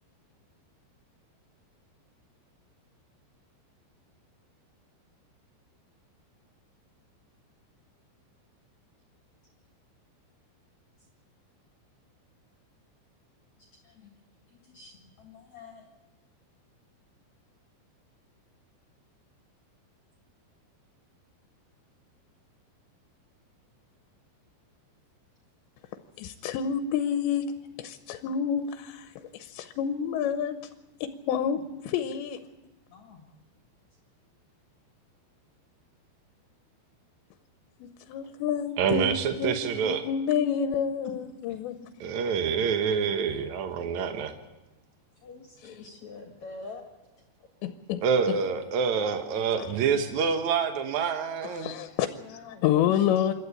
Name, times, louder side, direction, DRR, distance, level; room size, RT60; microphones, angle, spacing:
voice 1, 14.5-15.9 31.5-31.6 32.9-33.2 41.5-41.6 45.2-46.8 52.2-53.3, left 4 dB, 50° left, 2.6 m, -46 dB
voice 2, 26.2-27.5 27.8-30.7 31.0-32.4 37.8-39.6 39.8-41.8 47.6-48.4 49.6-49.7 51.4-53.3, left 8 dB, 80° left, 3.0 m, -29 dB
voice 3, 38.8-40.0 42.0-44.3 48.0-51.7, right 6 dB, 80° right, 1.7 m, -27 dB
27.0 x 12.0 x 8.5 m
omnidirectional pair, 5.3 m